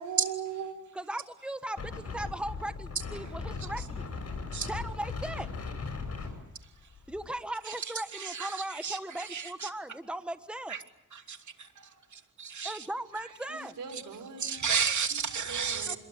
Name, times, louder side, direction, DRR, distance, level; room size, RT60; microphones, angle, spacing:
voice 1, 0.0-0.8 13.1-14.7 15.5-16.0, right 7 dB, 85° right, 8 dB, 4.8 m, -40 dB
voice 2, 0.9-4.0 4.7-5.5 7.1-10.7 12.6-13.7 15.9-16.0, right 1 dB, 5° right, 10 dB, 1.5 m, -38 dB
Wind, 1.8-7.3, left 4 dB, 50° left, 7.7 m, -38 dB
voice 3, 7.6-9.7 10.7-10.8 11.1-12.9 13.9-14.0 14.4-16.0, right 6 dB, 65° right, 4 dB, 3.0 m, -33 dB
26.5 x 22.5 x 8.9 m, 0.86 s
cardioid pair, 65°, 32 cm